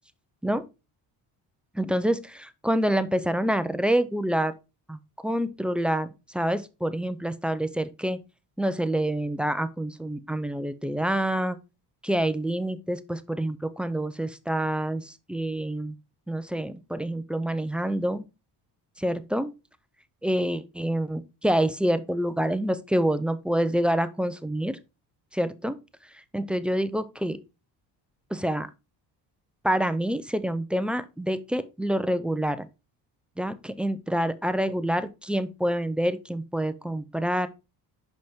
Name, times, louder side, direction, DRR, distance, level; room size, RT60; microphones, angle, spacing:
voice 1, 1.7-4.5 4.9-8.2 8.6-11.6 12.0-16.0 16.3-18.2 19.0-19.5 20.2-24.8 25.3-25.8 26.3-27.4 28.3-28.7 29.6-32.7 33.4-37.5, right 1 dB, 5° right, 0.3 m, -27 dB
5.7 x 5.2 x 3.5 m
cardioid pair, 105°, 45 cm